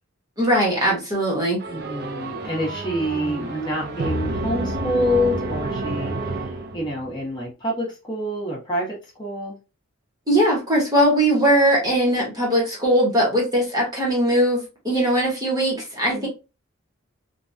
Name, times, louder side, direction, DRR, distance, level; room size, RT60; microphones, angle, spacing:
voice 1, 0.4-1.6 10.3-16.3, right 1 dB, 15° right, 1.0 m, -20 dB
sound 1, 1.6-7.2, right 2 dB, 50° right, 0.5 m, -29 dB
voice 2, 1.7-6.4 6.7-9.6 16.1-16.3, left 1 dB, 20° left, 1.0 m, -27 dB
3.3 x 2.2 x 2.5 m
head